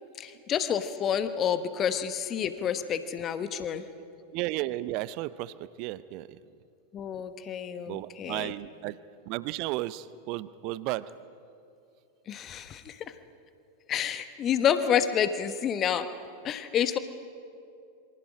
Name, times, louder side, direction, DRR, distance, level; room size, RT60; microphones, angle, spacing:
voice 1, 0.2-3.8 6.9-8.5 12.3-13.1 13.9-16.1 16.4-17.0, left 8 dB, 30° left, 11 dB, 1.2 m, -29 dB
voice 2, 4.3-6.4 7.9-9.0 9.3-11.1, right 17 dB, 45° right, 17 dB, 0.7 m, -34 dB
27.0 x 24.0 x 5.1 m, 2.5 s
figure-of-eight pair, 90°, 0 cm